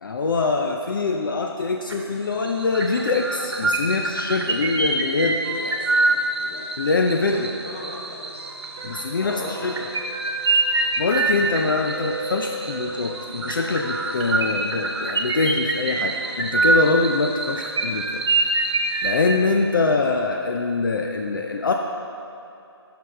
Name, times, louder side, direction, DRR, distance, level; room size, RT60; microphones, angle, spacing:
voice 1, 0.0-5.4 6.8-7.5 8.8-9.7 11.0-18.2 19.0-21.7, left 3 dB, 50° left, 2 dB, 0.5 m, -24 dB
sound 1, 1.9-2.2 2.5-19.3, right 2 dB, 75° right, 1.1 m, -25 dB
voice 2, 5.2-6.7 7.1-8.3 8.7-9.9, left 2 dB, 25° left, -1 dB, 0.8 m, -39 dB
sound 2, 8.3-14.6, right 3 dB, 10° right, 0.5 m, -37 dB
10.5 x 6.0 x 3.3 m, 2.7 s
hypercardioid pair, 165°, 14 cm